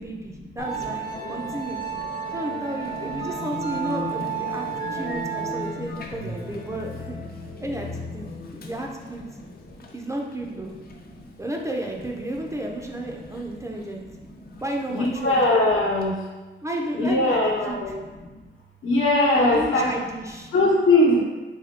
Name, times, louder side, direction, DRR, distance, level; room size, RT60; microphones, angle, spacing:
voice 1, 0.0-1.8 2.3-7.2 7.6-9.2 9.9-10.7 11.4-14.1 14.6-15.4 16.6-18.0 19.4-20.5, right 1 dB, 15° right, 0 dB, 0.4 m, -32 dB
Musical instrument, 0.6-16.1, right 3 dB, 50° left, 0.4 m, -34 dB
voice 2, 14.9-16.2 16.9-17.9 18.8-19.9 20.5-21.2, left 2 dB, 80° left, -3 dB, 0.9 m, -20 dB
3.5 x 2.2 x 3.6 m, 1.2 s
cardioid pair, 95°, 21 cm